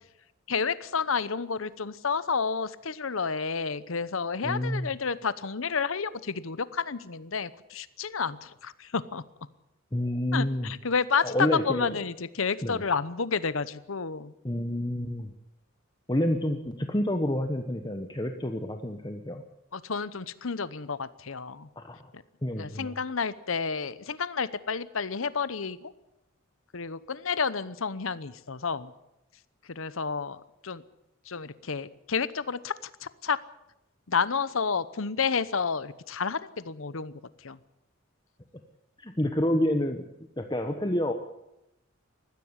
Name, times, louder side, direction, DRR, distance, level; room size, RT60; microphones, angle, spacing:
voice 1, 0.5-9.2 10.3-11.3 11.7-14.3 19.7-21.7 22.6-25.9 26.7-28.9 29.7-30.4 30.6-30.8 31.3-32.7 33.0-33.4 34.1-37.1 37.4-37.6, left 5 dB, 70° left, 16 dB, 0.9 m, -30 dB
voice 2, 4.4-4.9 9.9-10.7 11.2-12.0 12.6-12.8 14.4-15.3 16.1-19.4 21.8-22.0 22.4-23.0 39.0-40.0 40.4-41.1, left 1 dB, 20° left, 5 dB, 1.1 m, -28 dB
20.5 x 15.0 x 9.8 m, 0.88 s
head